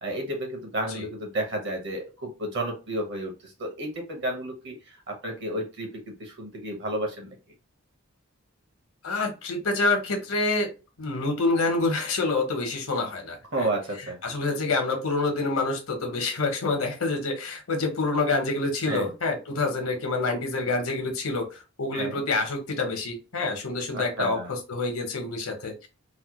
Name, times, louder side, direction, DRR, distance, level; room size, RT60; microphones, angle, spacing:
voice 1, 0.0-3.3 3.6-4.8 5.1-7.3 13.5-14.2 18.9-19.1 21.9-22.2 23.9-24.5, right 1 dB, 60° right, 2 dB, 1.1 m, -31 dB
voice 2, 9.0-10.7 11.0-13.7 14.2-25.9, left 3 dB, 85° left, 4 dB, 0.9 m, -27 dB
3.2 x 2.2 x 3.0 m, 0.31 s
head